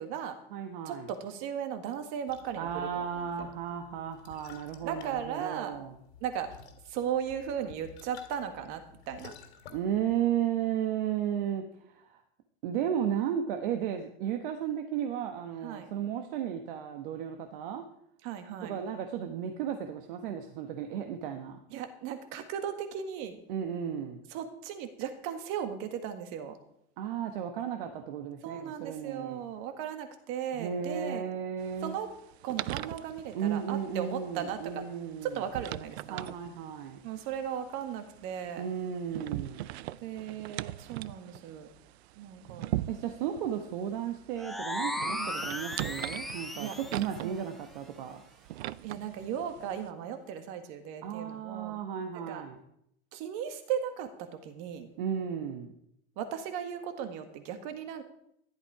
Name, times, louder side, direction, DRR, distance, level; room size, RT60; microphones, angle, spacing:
voice 1, 0.0-0.4 0.8-3.0 3.4-3.5 4.8-5.8 6.2-6.5 6.9-9.3 15.6-15.9 18.2-18.8 21.7-23.4 24.3-26.6 28.4-31.3 31.8-32.1 32.4-34.9 35.2-36.3 37.0-38.7 40.0-41.7 42.1-42.7 45.2-45.4 46.6-46.8 47.2-47.5 48.8-51.8 52.2-52.5 53.1-54.9 56.2-58.0, right 8 dB, 40° right, 8 dB, 1.8 m, -37 dB
voice 2, 0.5-1.1 2.6-5.9 9.7-12.2 12.6-17.8 18.6-21.6 23.5-24.2 27.0-29.4 30.5-32.0 33.3-35.4 36.1-37.0 38.6-39.7 42.9-48.2 51.0-52.6 55.0-55.7, right 9 dB, 55° right, 5 dB, 1.4 m, -34 dB
sound 1, 2.3-10.2, left 7 dB, 90° left, 3.1 m, -53 dB
sound 2, 31.6-49.9, right 15 dB, 80° right, 0.5 m, -42 dB
sound 3, 44.4-47.1, left 1 dB, ahead, 0.5 m, -36 dB
13.5 x 11.5 x 4.9 m, 0.74 s
supercardioid pair, 165°, 32 cm